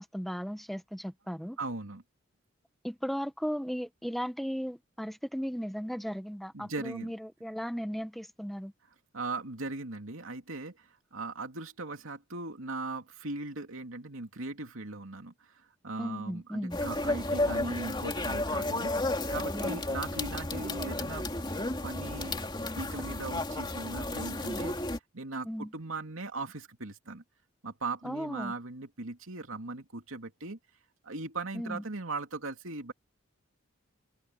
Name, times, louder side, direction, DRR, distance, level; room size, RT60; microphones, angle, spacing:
voice 1, 0.0-1.6 2.8-8.7 16.0-16.8 19.5-19.8 25.4-25.7 28.0-28.5 31.5-31.8, equal, ahead, 1.0 m, -36 dB
voice 2, 1.6-2.0 6.5-7.1 9.1-19.0 19.3-21.3 21.6-22.5 22.7-24.7 25.1-27.2 27.6-30.6 31.0-32.9, right 3 dB, 80° right, 2.8 m, -39 dB
sound 1, 16.7-25.0, left 2 dB, 20° left, 3.0 m, -32 dB
head